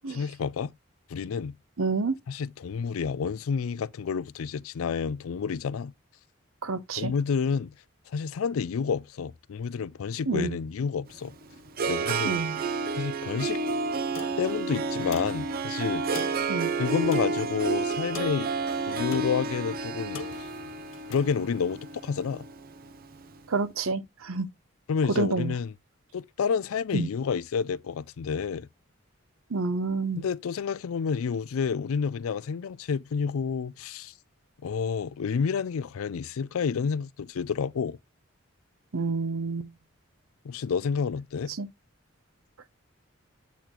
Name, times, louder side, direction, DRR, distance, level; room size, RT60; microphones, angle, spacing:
voice 1, 0.1-0.7 1.1-1.6 2.3-5.9 7.0-7.7 8.1-11.3 11.9-12.4 13.0-13.6 14.4-16.2 16.8-18.5 18.9-20.5 21.1-22.5 24.9-25.7 26.1-28.7 30.2-34.1 34.6-38.0 40.4-41.5, left 6 dB, 85° left, 0.4 m, -29 dB
voice 2, 1.8-2.2 6.6-7.1 10.3-10.6 12.2-12.6 16.5-16.7 23.5-24.5 25.2-25.6 26.9-27.1 29.5-30.2 38.9-39.7 41.6-41.7, right 3 dB, 85° right, 0.7 m, -28 dB
Harp, 11.1-23.3, right 4 dB, 45° right, 0.6 m, -30 dB
sound 1, 14.1-21.9, left 4 dB, 65° left, 0.8 m, -45 dB
8.4 x 3.0 x 3.7 m
head